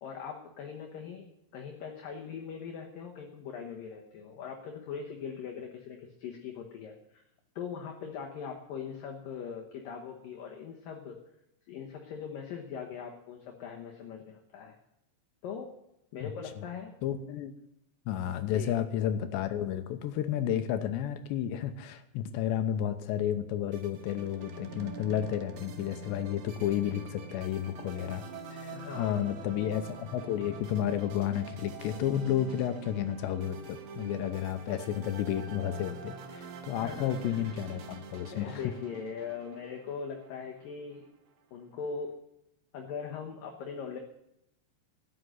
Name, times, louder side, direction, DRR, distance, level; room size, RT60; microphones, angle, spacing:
voice 1, 0.0-7.2 7.6-11.2 11.7-14.8 15.4-15.7 16.1-16.9 18.5-18.8 28.7-29.2 36.7-37.4 38.3-41.1 41.5-42.1 42.7-44.0, left 6 dB, 65° left, 1 dB, 2.4 m, -41 dB
voice 2, 17.0-17.5 18.1-28.2 28.5-38.6, left 10 dB, 80° left, 9 dB, 2.9 m, -32 dB
sound 1, 23.7-41.1, right 5 dB, 75° right, 1.8 m, -45 dB
13.5 x 10.0 x 7.9 m, 0.82 s
omnidirectional pair, 5.3 m